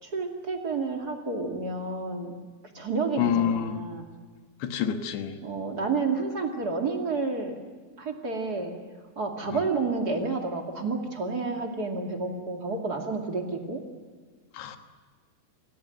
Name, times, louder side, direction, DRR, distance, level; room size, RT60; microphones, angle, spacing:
voice 1, 0.0-2.3 2.6-4.1 5.4-7.5 8.0-8.7 9.2-13.8, right 3 dB, 30° right, 2 dB, 1.9 m, -30 dB
voice 2, 3.2-3.8 4.6-5.4 14.5-14.8, left 9 dB, 75° left, 7 dB, 3.5 m, -27 dB
27.5 x 16.0 x 9.4 m, 1.5 s
omnidirectional pair, 5.0 m